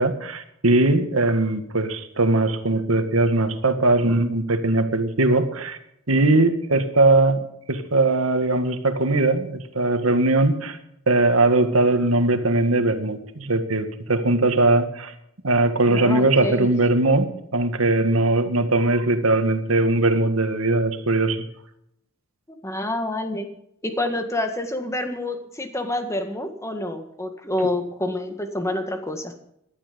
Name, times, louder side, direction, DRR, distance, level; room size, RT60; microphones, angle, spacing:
voice 1, 0.0-5.8 6.1-10.8 11.1-15.1 15.4-21.5, right 2 dB, 85° right, 8 dB, 1.8 m, -20 dB
voice 2, 15.9-16.7 22.5-23.5 23.8-29.3, left 1 dB, 15° left, 7 dB, 1.7 m, -28 dB
15.5 x 12.0 x 5.2 m, 0.76 s
head